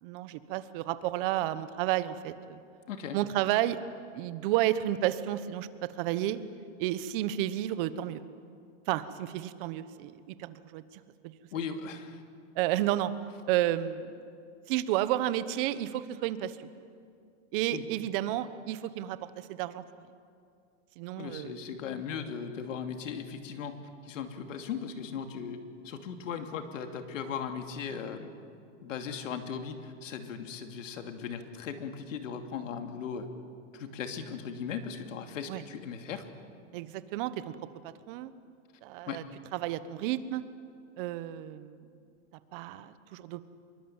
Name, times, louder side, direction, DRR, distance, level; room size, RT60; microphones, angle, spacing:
voice 1, 0.0-2.6 3.1-3.8 4.1-5.7 6.0-6.4 6.8-8.2 8.9-10.8 11.2-11.4 12.5-13.1 13.5-14.1 14.7-16.7 17.5-19.8 21.0-21.6 35.5-35.6 36.7-37.5 37.8-38.3 38.8-39.2 39.5-40.4 41.0-41.8 42.5-43.4, right 13 dB, 45° right, 13 dB, 1.2 m, -31 dB
voice 2, 11.5-12.2 17.7-17.9 21.2-23.8 24.0-28.3 28.8-33.3 33.7-36.2 39.1-39.2, left 7 dB, 85° left, 6 dB, 2.8 m, -38 dB
25.0 x 22.5 x 8.9 m, 2.4 s
supercardioid pair, 155°, 37 cm